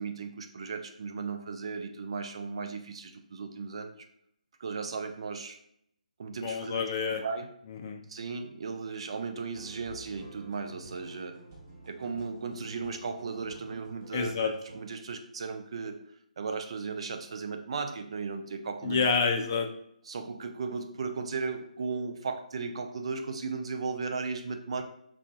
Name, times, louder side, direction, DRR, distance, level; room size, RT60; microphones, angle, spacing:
voice 1, 0.0-3.9 4.6-5.6 6.2-6.8 7.1-7.5 8.1-11.3 11.9-16.0 16.4-19.1 20.1-24.8, right 4 dB, 45° right, 6 dB, 0.4 m, -36 dB
voice 2, 6.4-7.2 7.7-8.0 14.1-14.5 18.8-19.7, left 5 dB, 30° left, 4 dB, 0.4 m, -28 dB
sound 1, 9.5-14.8, right 3 dB, 25° right, 0.7 m, -49 dB
2.5 x 2.0 x 3.4 m, 0.71 s
figure-of-eight pair, 145°, 4 cm